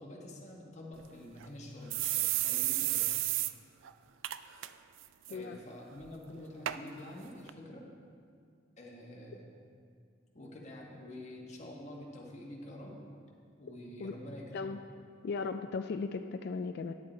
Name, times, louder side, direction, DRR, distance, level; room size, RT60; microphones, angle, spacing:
voice 1, 0.0-3.1 5.3-7.8 8.8-9.5 10.3-12.9 13.6-14.7, left 1 dB, 35° left, -2 dB, 1.4 m, -47 dB
sound 1, 1.0-1.1 1.4-1.5 1.9-3.5 3.9-4.0 4.2-4.7 5.0-5.3 6.0-6.1 6.7-6.8 7.5-7.6, right 15 dB, 75° right, 0.3 m, -31 dB
voice 2, 15.2-16.9, left 4 dB, 55° left, 7 dB, 0.3 m, -36 dB
10.0 x 7.6 x 4.4 m, 2.3 s
head